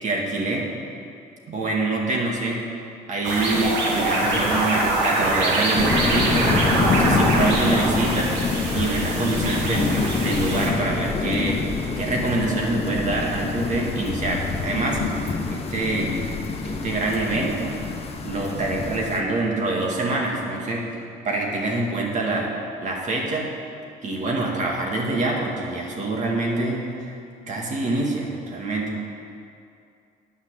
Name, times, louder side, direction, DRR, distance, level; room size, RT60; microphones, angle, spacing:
voice 1, 0.0-0.7 1.5-2.6 3.1-6.5 6.9-8.4 8.7-9.9 10.2-11.6 12.0-15.0 15.5-16.1 16.6-17.7 18.2-20.9 21.2-22.5 22.8-23.5 24.0-27.1 27.5-28.9, right 2 dB, 45° right, -1 dB, 2.2 m, -25 dB
sound 1, 3.2-10.7, right 2 dB, 85° right, 2.3 m, -24 dB
sound 2, 5.7-19.2, left 4 dB, 35° left, 1.2 m, -26 dB
10.0 x 5.7 x 8.4 m, 2.5 s
cardioid pair, 110°, 17 cm